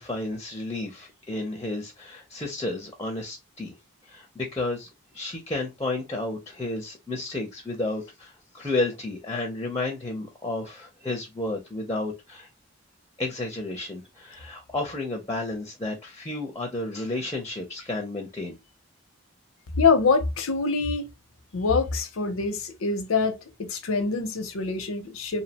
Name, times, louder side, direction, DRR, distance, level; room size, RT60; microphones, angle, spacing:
voice 1, 0.0-3.8 4.0-4.9 5.1-12.5 13.2-18.6, left 2 dB, 15° left, 0.5 m, -32 dB
voice 2, 19.8-21.1 21.5-25.4, left 4 dB, 90° left, 0.6 m, -25 dB
2.7 x 2.1 x 2.7 m
head